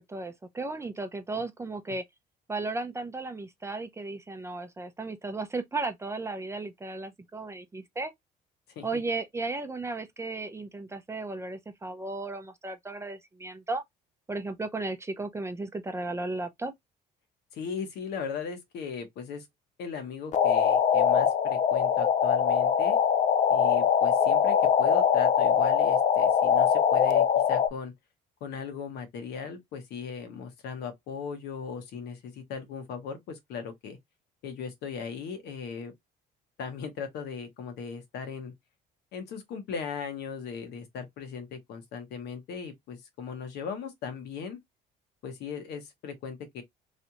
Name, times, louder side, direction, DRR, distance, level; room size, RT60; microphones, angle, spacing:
voice 1, 0.0-2.0 2.5-8.1 8.8-13.8 14.3-16.7, right 3 dB, 15° right, 0.5 m, -35 dB
voice 2, 17.5-19.5 19.8-23.0 23.5-27.9 28.4-34.0 34.4-35.9 36.6-38.5 39.1-44.6 45.2-46.6, left 6 dB, 75° left, 1.2 m, -38 dB
sound 1, 20.3-27.7, left 8 dB, 45° left, 0.4 m, -22 dB
3.2 x 2.5 x 2.9 m
cardioid pair, 110°, 17 cm